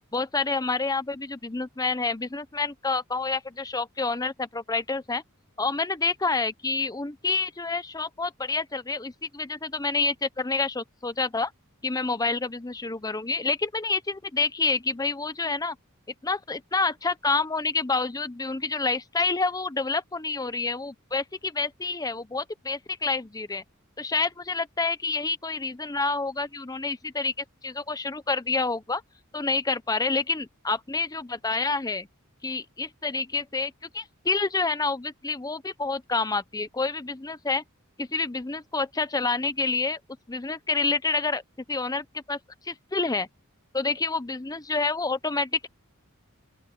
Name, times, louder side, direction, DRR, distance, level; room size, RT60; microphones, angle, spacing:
voice 1, 0.1-5.2 5.6-11.5 11.8-15.8 16.2-23.6 24.0-29.0 29.3-32.1 32.4-37.6 38.0-40.0 40.3-41.4 41.7-43.3 43.7-45.7, left 3 dB, 15° left, 0.7 m, -28 dB
open air
head